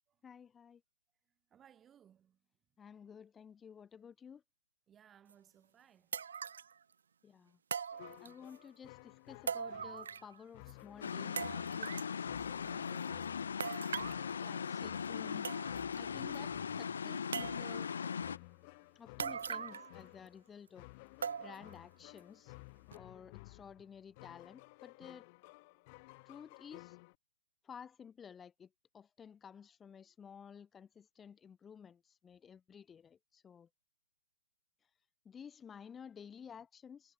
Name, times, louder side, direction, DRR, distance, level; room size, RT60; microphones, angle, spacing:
voice 1, 0.2-0.8 2.8-4.4 7.2-7.6 8.2-13.2 14.4-15.5 16.0-17.9 18.9-20.9 21.4-22.5 22.9-25.3 26.2-27.0 27.6-33.7 35.2-37.1, left 7 dB, 15° left, 4.1 m, -53 dB
voice 2, 1.5-2.4 4.9-6.2, right 9 dB, 15° right, 4.3 m, -64 dB
sound 1, 5.3-5.4 6.1-6.7 7.7-8.6 9.5-10.4 10.7-10.8 11.4-12.1 13.6-14.3 15.1-15.2 15.4-16.0 16.3-16.4 17.3-17.9 19.2-20.0 20.3-20.4 21.2-21.7 22.2-22.3 22.9-23.0, right 7 dB, 75° right, 0.5 m, -41 dB
sound 2, 7.9-27.2, left 26 dB, 35° left, 2.0 m, -56 dB
sound 3, 11.0-18.4, left 6 dB, 75° left, 0.5 m, -39 dB
hypercardioid pair, 140°, 0 cm